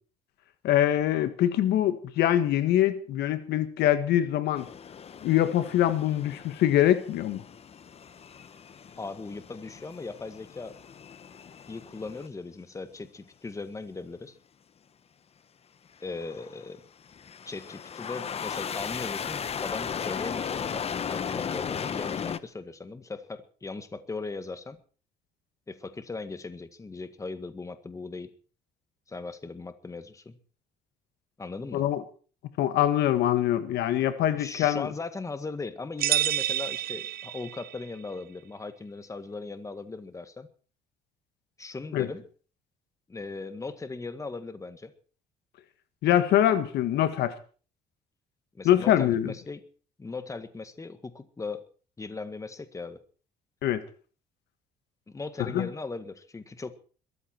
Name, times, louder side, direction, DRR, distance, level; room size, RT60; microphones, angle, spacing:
voice 1, 0.6-4.7 5.2-7.4 31.7-32.0 32.6-34.9 41.9-42.1 46.0-47.3 48.6-49.3 53.6-53.8 55.5-55.7, left 12 dB, 75° left, 1.6 m, -24 dB
sound 1, 4.6-12.3 16.1-16.7 17.1-22.4, left 7 dB, 35° left, 1.0 m, -36 dB
voice 2, 9.0-10.8 11.7-14.4 16.0-16.8 17.5-24.8 25.7-28.3 29.1-30.4 31.4-31.8 34.3-40.5 41.6-42.2 43.1-44.9 48.6-49.6 50.0-51.6 52.0-53.0 55.1-56.8, left 3 dB, 20° left, 1.8 m, -38 dB
sound 2, 36.0-37.8, right 12 dB, 65° right, 1.0 m, -28 dB
22.0 x 14.0 x 4.6 m
cardioid pair, 110°, 17 cm